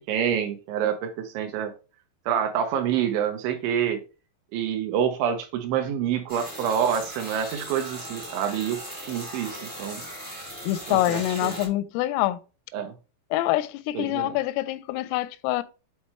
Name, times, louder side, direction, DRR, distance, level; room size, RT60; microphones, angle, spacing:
voice 1, 0.0-1.7 2.3-4.0 4.5-8.8 9.1-10.0 10.9-11.5 12.7-12.9 13.9-14.3, right 8 dB, 80° right, 2.9 m, -27 dB
sound 1, 6.3-11.7, equal, 10° right, 0.5 m, -38 dB
voice 2, 10.7-12.4 13.3-15.6, left 15 dB, 85° left, 3.1 m, -25 dB
8.2 x 4.2 x 3.2 m
omnidirectional pair, 5.8 m